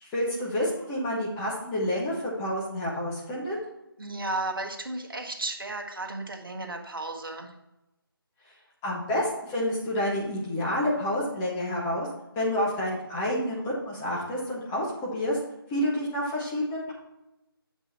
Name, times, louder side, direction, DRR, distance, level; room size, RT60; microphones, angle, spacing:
voice 1, 0.0-3.6 8.8-12.1 12.4-15.4 15.7-16.9, left 1 dB, 10° left, -5 dB, 0.8 m, -29 dB
voice 2, 4.0-7.5, right 2 dB, 60° right, 3 dB, 1.4 m, -34 dB
7.4 x 5.4 x 4.2 m, 0.93 s
figure-of-eight pair, 160°, 13 cm